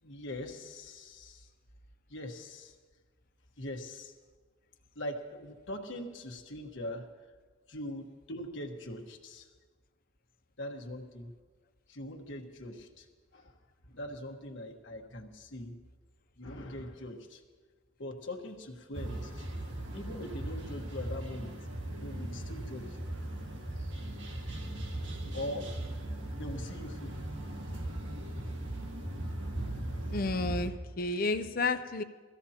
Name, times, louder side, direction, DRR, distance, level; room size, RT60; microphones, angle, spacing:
voice 1, 0.0-1.5 2.1-2.8 3.6-4.1 4.9-7.3 7.7-9.5 10.6-11.3 11.9-13.1 13.3-13.6 13.8-15.8 16.4-17.4 18.0-19.5 19.9-21.6 22.0-23.0 25.3-25.9 26.3-27.1, left 1 dB, 65° left, 2 dB, 1.4 m, -42 dB
sound 1, 18.9-30.7, right 1 dB, 65° right, 1.7 m, -38 dB
voice 2, 30.1-32.0, left 3 dB, 45° left, 10 dB, 0.5 m, -31 dB
23.0 x 15.0 x 2.9 m, 1.4 s
head